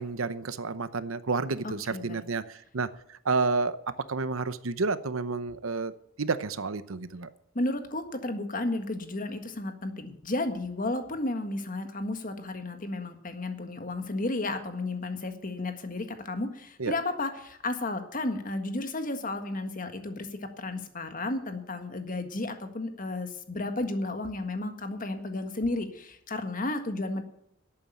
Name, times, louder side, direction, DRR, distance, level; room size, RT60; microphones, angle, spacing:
voice 1, 0.0-3.8 4.1-5.9 6.2-7.3 16.8-16.9, right 4 dB, 90° right, 13 dB, 0.9 m, -30 dB
voice 2, 1.6-2.2 7.5-27.2, left 2 dB, 40° left, 7 dB, 1.7 m, -33 dB
11.5 x 8.7 x 9.0 m, 0.71 s
head